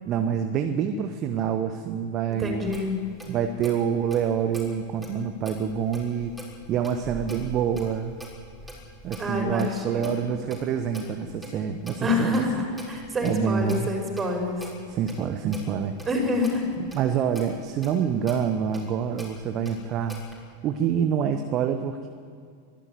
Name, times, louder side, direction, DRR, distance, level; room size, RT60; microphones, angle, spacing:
voice 1, 0.0-2.7 3.3-6.4 6.7-8.2 9.0-12.6 13.0-13.9 14.9-15.9 16.9-20.2 20.6-22.1, right 8 dB, 35° right, 6 dB, 1.3 m, -27 dB
voice 2, 2.3-3.0 9.2-10.3 12.0-14.6 16.1-16.6, left 2 dB, 15° right, 2 dB, 5.5 m, -27 dB
Clock, 2.6-20.4, equal, 5° left, 6.3 m, -45 dB
23.5 x 13.5 x 9.7 m, 2.2 s
figure-of-eight pair, 90°, 0 cm